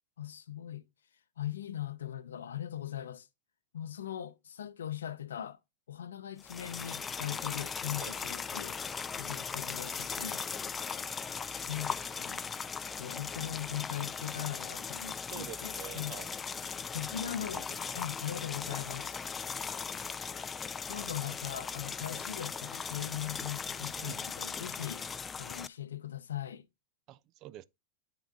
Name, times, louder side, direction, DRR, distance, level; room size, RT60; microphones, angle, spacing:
voice 1, 0.2-0.8 1.4-3.3 3.7-5.6 5.9-8.8 9.2-10.4 11.5-12.4 13.0-16.2 16.6-17.7 17.9-19.2 20.9-25.1 25.4-26.6, left 11 dB, 80° left, 0.6 m, -40 dB
sound 1, 6.4-25.7, left 6 dB, 20° left, 0.3 m, -38 dB
voice 2, 15.3-16.4 17.5-18.0 23.9-24.3 27.1-27.6, right 14 dB, 45° right, 0.4 m, -47 dB
8.8 x 3.7 x 3.7 m
hypercardioid pair, 105°, 0 cm